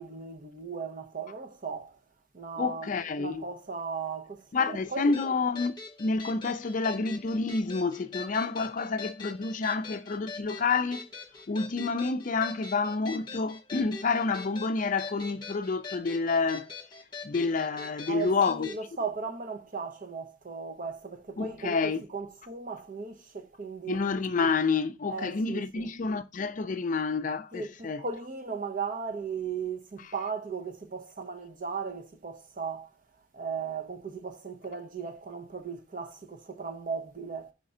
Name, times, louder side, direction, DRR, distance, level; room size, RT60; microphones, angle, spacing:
voice 1, 0.0-2.0 2.3-2.9 3.2-5.1 18.1-24.0 25.1-25.9 27.5-33.0 33.3-37.5, right 5 dB, 45° right, 0.8 m, -37 dB
voice 2, 2.6-3.4 4.5-5.7 6.0-11.1 11.5-16.7 17.2-18.7 21.4-22.0 23.9-28.0, left 4 dB, 45° left, 0.4 m, -29 dB
sound 1, 5.1-18.8, left 4 dB, 25° left, 1.2 m, -43 dB
5.0 x 3.7 x 5.4 m
head